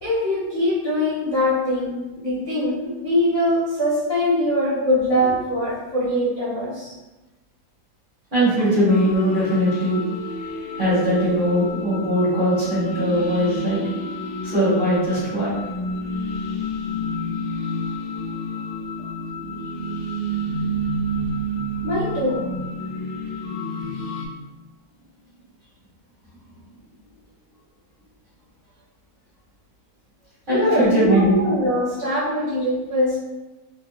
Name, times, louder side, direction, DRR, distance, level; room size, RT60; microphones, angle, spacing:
voice 1, 0.0-6.9 21.8-22.5 30.5-33.2, left 1 dB, 60° left, -12 dB, 0.4 m, -22 dB
voice 2, 8.3-10.0 10.8-13.8 14.4-15.5 30.5-31.4, equal, 30° right, -10 dB, 1.3 m, -20 dB
sound 1, 8.9-24.3, equal, 85° left, 1.5 m, -29 dB
3.3 x 2.8 x 2.4 m, 1.1 s
omnidirectional pair, 2.2 m